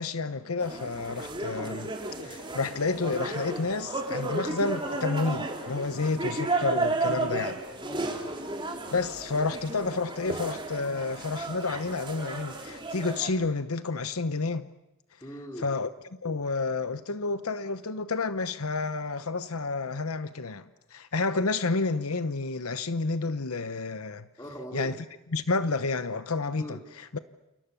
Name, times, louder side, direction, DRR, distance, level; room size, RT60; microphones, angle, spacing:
voice 1, 0.0-1.9 2.2-7.6 8.9-14.7 15.6-15.9 16.2-24.3 24.7-25.0 25.3-27.2, left 3 dB, 80° left, 1.0 m, -30 dB
sound 1, 0.6-13.3, right 2 dB, 25° right, 4.0 m, -33 dB
voice 2, 7.8-8.3 15.2-15.7 24.4-24.9 26.5-26.9, equal, 15° left, 3.9 m, -41 dB
29.5 x 29.0 x 7.0 m
head